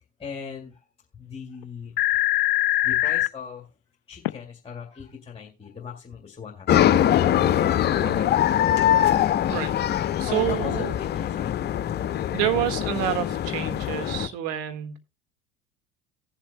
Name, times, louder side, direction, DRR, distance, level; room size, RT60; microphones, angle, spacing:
voice 1, 0.2-0.8 1.1-2.0 2.8-3.7 4.1-6.9 10.2-11.5 11.9-12.1, left 6 dB, 20° left, -2 dB, 2.1 m, -39 dB
sound 1, 1.6-1.7 2.0-3.3 4.2-4.3, left 17 dB, 65° left, 0.5 m, -22 dB
sound 2, 6.7-14.3, left 11 dB, 35° left, 0.7 m, -23 dB
voice 2, 10.2-10.9 12.3-15.0, right 11 dB, 55° right, 7 dB, 1.7 m, -28 dB
18.5 x 7.3 x 2.2 m, 0.27 s
hypercardioid pair, 70°, 29 cm